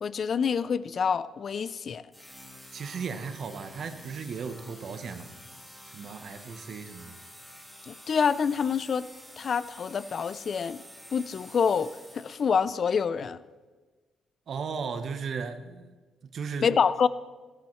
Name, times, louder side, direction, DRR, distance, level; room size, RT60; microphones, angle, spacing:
voice 1, 0.0-2.0 7.9-9.1 9.4-10.8 11.1-11.9 12.2-13.4 16.6-17.1, left 6 dB, 50° left, 16 dB, 0.4 m, -26 dB
sound 1, 2.1-12.7, equal, 5° left, 2.5 m, -49 dB
voice 2, 2.7-5.3 5.9-7.2 14.5-15.9 16.3-16.7, right 5 dB, 55° right, 8 dB, 1.0 m, -36 dB
15.5 x 12.0 x 3.2 m, 1.3 s
cardioid pair, 90°, 0 cm